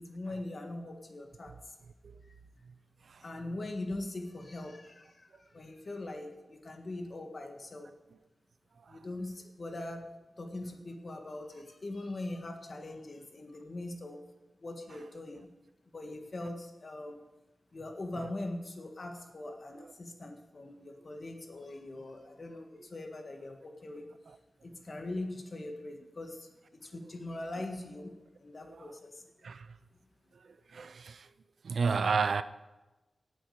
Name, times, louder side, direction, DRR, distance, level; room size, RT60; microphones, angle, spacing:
voice 1, 0.0-1.5 3.2-7.9 8.9-10.1 10.3-14.2 14.6-15.5 15.9-17.2 17.7-24.1 24.6-29.3, left 2 dB, 50° left, 1.8 m, -41 dB
voice 2, 30.7-31.3 31.6-32.4, right 5 dB, 75° right, 0.5 m, -30 dB
17.5 x 7.7 x 5.0 m
wide cardioid pair, 80°, 0 cm